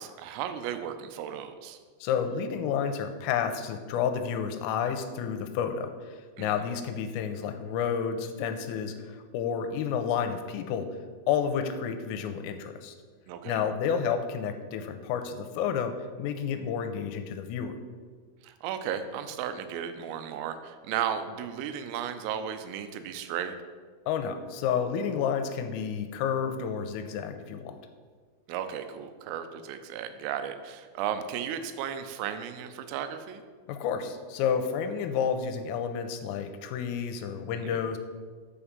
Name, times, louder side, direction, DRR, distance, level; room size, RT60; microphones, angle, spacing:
voice 1, 0.0-1.8 6.4-6.6 13.3-13.6 18.4-23.5 28.5-33.4 37.5-37.8, right 9 dB, 90° right, 9 dB, 3.3 m, -35 dB
voice 2, 2.0-10.9 11.3-12.9 13.5-17.7 24.1-27.8 33.7-38.0, left 7 dB, 85° left, 8 dB, 3.3 m, -30 dB
7.4 x 7.1 x 5.1 m, 1.5 s
omnidirectional pair, 5.8 m